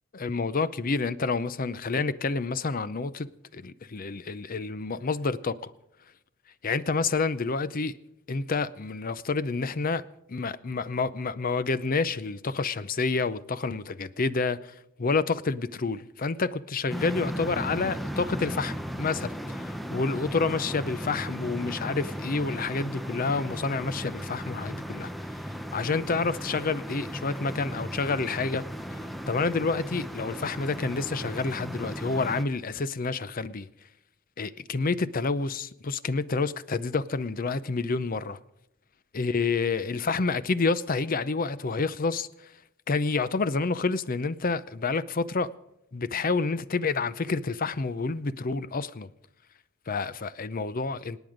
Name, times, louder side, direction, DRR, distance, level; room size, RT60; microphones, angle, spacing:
voice 1, 0.1-5.7 6.6-8.0 8.3-10.0 10.3-25.1 25.7-28.7 29.3-33.7 34.4-38.4 39.1-42.3 42.9-45.5 45.9-49.1 49.9-51.2, left 4 dB, 45° left, 0.6 m, -29 dB
sound 1, 16.9-32.4, equal, ahead, 0.7 m, -36 dB
26.5 x 9.1 x 5.1 m
head